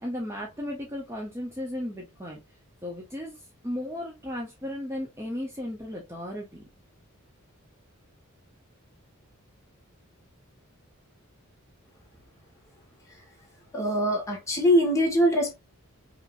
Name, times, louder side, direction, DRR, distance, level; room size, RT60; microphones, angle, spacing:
voice 1, 0.0-2.4 2.8-6.6, left 1 dB, 10° right, 0.8 m, -35 dB
voice 2, 13.7-15.5, equal, 15° left, 1.7 m, -22 dB
5.5 x 2.9 x 2.6 m
head